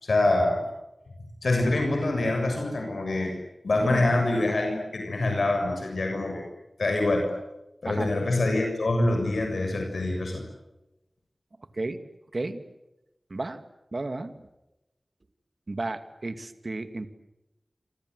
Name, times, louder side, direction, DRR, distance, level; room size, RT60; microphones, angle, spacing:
voice 1, 0.1-0.6 1.4-3.3 3.6-6.4 6.8-7.3 7.8-10.4, left 2 dB, 80° left, 3 dB, 6.9 m, -25 dB
voice 2, 13.3-13.6 13.9-14.3 15.7-17.1, right 2 dB, 50° right, 9 dB, 2.5 m, -32 dB
27.5 x 26.5 x 8.0 m, 0.95 s
wide cardioid pair, 75°, 0 cm